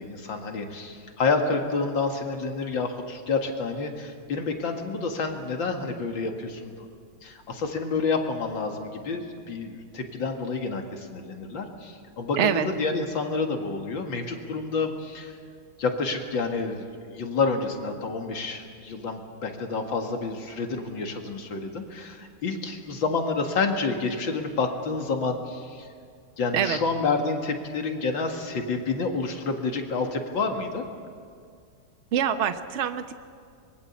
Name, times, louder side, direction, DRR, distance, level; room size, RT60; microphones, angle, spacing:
voice 1, 0.0-6.9 7.2-15.4 15.8-25.9 26.4-30.8, left 4 dB, 70° left, 3 dB, 2.7 m, -29 dB
voice 2, 32.1-33.2, right 9 dB, 45° right, 9 dB, 1.0 m, -25 dB
24.5 x 21.5 x 7.1 m, 2.2 s
omnidirectional pair, 2.2 m